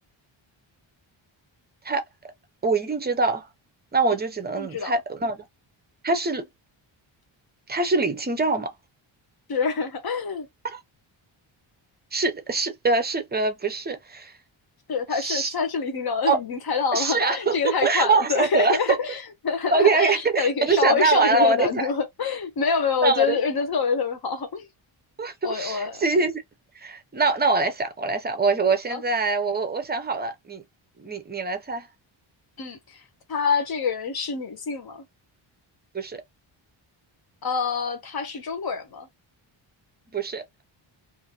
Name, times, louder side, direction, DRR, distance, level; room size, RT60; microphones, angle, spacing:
voice 1, 2.6-3.5 3.9-5.4 6.0-6.5 7.7-8.7 10.6-10.8 12.1-14.3 15.1-15.5 16.3-16.4 16.9-17.6 17.8-19.0 19.7-21.9 23.0-23.4 25.2-26.4 26.8-30.6 31.0-31.9 35.9-36.2 40.1-40.4, right 3 dB, 20° right, 0.5 m, -23 dB
voice 2, 4.6-4.9 9.5-10.5 14.9-24.7 25.4-26.0 28.9-29.0 32.6-32.8 33.3-35.0 37.4-39.1, left 5 dB, 50° left, 0.9 m, -26 dB
2.6 x 2.5 x 2.8 m
wide cardioid pair, 145°, 49 cm